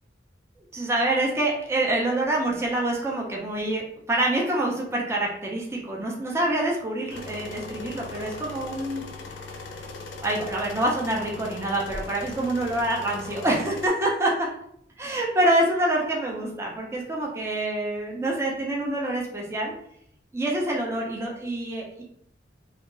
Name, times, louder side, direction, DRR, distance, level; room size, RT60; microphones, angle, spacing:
voice 1, 0.7-9.0 10.2-14.5 15.0-19.7 20.3-22.0, right 1 dB, 15° right, -2 dB, 0.4 m, -26 dB
sound 1, 7.1-13.9, left 3 dB, 70° left, 0.4 m, -39 dB
2.7 x 2.3 x 2.4 m, 0.69 s
head